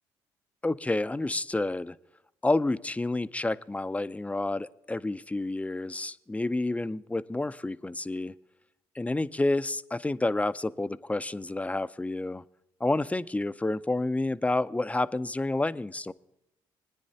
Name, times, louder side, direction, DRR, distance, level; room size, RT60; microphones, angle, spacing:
voice 1, 0.6-2.0 2.4-8.3 9.0-12.4 12.8-16.1, left 2 dB, 10° left, 15 dB, 0.4 m, -29 dB
20.0 x 9.8 x 2.7 m, 0.86 s
hypercardioid pair, 50°, 11 cm